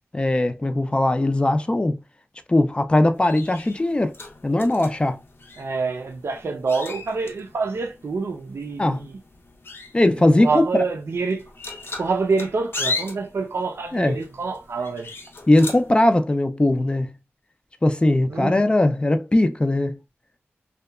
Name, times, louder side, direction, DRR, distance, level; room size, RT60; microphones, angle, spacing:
voice 1, 0.1-2.0 2.5-4.1 4.4-5.2 8.8-9.0 9.9-10.8 13.9-14.2 15.5-17.1 17.8-20.0, left 1 dB, 25° left, 0.3 m, -19 dB
sound 1, 3.1-15.9, left 3 dB, 60° left, 0.6 m, -37 dB
voice 2, 5.6-9.2 10.3-11.5 12.0-15.1 18.3-18.7, right 4 dB, 75° right, 0.4 m, -26 dB
2.8 x 2.2 x 2.2 m
wide cardioid pair, 100°, 4 cm